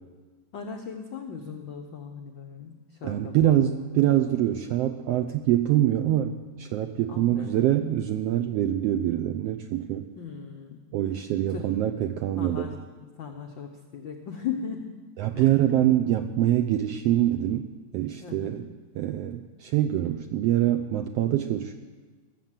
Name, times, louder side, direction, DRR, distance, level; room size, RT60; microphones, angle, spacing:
voice 1, 0.5-3.6 7.1-7.7 10.2-10.8 11.5-11.8 12.4-14.9 15.3-15.5 15.9-16.0 18.2-18.6, left 7 dB, 85° left, 3 dB, 1.0 m, -38 dB
voice 2, 3.0-10.1 10.9-12.7 15.2-17.7 17.9-18.7 18.9-21.8, right 12 dB, 90° right, 6 dB, 1.4 m, -24 dB
18.0 x 7.6 x 7.5 m, 1.4 s
omnidirectional pair, 3.4 m